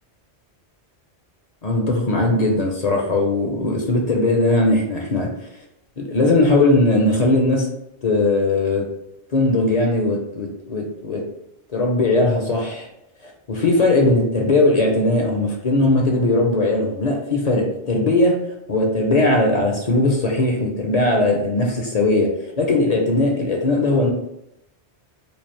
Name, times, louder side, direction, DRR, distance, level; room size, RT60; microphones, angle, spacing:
voice 1, 1.6-5.3 6.0-7.7 8.0-8.9 9.3-11.2 11.7-12.9 13.2-18.4 18.7-22.3 22.6-24.1, left 2 dB, 45° left, 1 dB, 0.6 m, -19 dB
3.2 x 2.4 x 4.3 m, 0.83 s
omnidirectional pair, 1.1 m